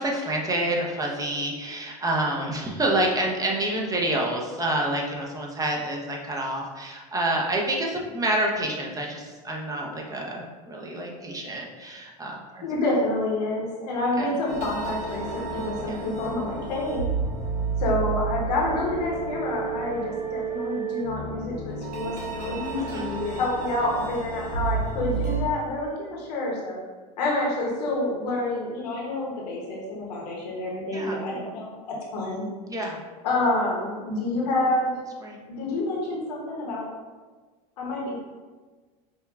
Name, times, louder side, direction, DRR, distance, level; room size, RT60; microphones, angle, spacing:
voice 1, 0.0-12.6 14.2-14.3 15.9-16.1 22.9-23.1 30.9-31.2 32.7-33.0 35.2-35.4, right 1 dB, 15° right, -1 dB, 0.7 m, -28 dB
voice 2, 12.6-17.0 17.8-26.8 27.2-32.5 33.2-34.9 35.5-36.9 37.8-38.2, left 2 dB, 80° left, -3 dB, 1.1 m, -28 dB
sound 1, 14.5-25.4, right 5 dB, 85° right, 1.1 m, -31 dB
5.1 x 2.3 x 2.4 m, 1.4 s
hypercardioid pair, 90°, 21 cm